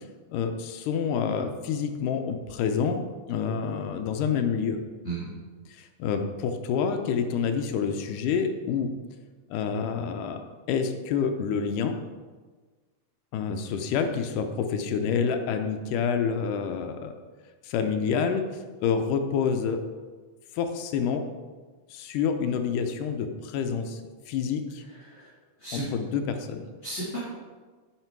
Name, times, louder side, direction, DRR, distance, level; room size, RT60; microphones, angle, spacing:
voice 1, 0.3-4.8 5.7-8.9 9.5-10.4 10.7-12.0 13.3-17.1 17.6-18.4 18.8-19.8 20.5-21.3 21.9-24.0 24.3-24.8 25.7-26.7, left 6 dB, 90° left, 6 dB, 2.3 m, -28 dB
voice 2, 24.9-25.3 25.6-25.9 26.8-27.2, right 2 dB, 20° left, -10 dB, 2.9 m, -34 dB
10.0 x 5.9 x 4.6 m, 1.4 s
omnidirectional pair, 3.6 m